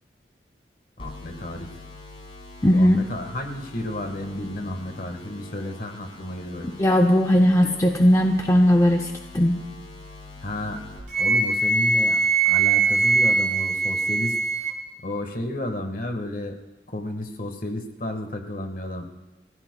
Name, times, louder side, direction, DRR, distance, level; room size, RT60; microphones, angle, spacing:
voice 1, 1.0-1.7 2.6-6.7 10.4-10.8 11.2-12.2 12.4-14.4 15.0-16.6 16.9-19.1, left 1 dB, 50° left, 5 dB, 1.5 m, -32 dB
sound 1, 1.0-11.0, left 2 dB, 35° left, 6.9 m, -43 dB
voice 2, 2.6-3.0 6.8-9.6, equal, 20° left, 3 dB, 0.6 m, -18 dB
Wind instrument woodwind instrument, 11.1-14.8, right 4 dB, 75° right, 2.0 m, -21 dB
29.5 x 16.0 x 2.3 m, 1.1 s
head